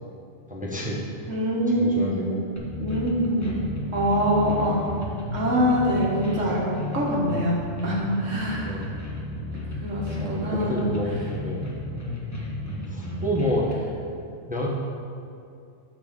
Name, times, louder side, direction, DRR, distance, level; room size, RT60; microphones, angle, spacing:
voice 1, 0.5-1.0 1.7-2.4 2.9-3.0 3.4-3.7 8.6-8.9 10.2-11.6 12.9-13.7 14.5-14.7, equal, 5° right, -4 dB, 1.1 m, -29 dB
voice 2, 1.3-2.4 2.8-3.5 3.9-4.8 5.3-6.6 6.9-8.9 9.8-10.9, equal, 70° right, -5 dB, 1.9 m, -24 dB
sound 1, 2.6-13.7, left 1 dB, 15° left, 1.2 m, -33 dB
10.5 x 4.1 x 6.7 m, 2.4 s
omnidirectional pair, 1.3 m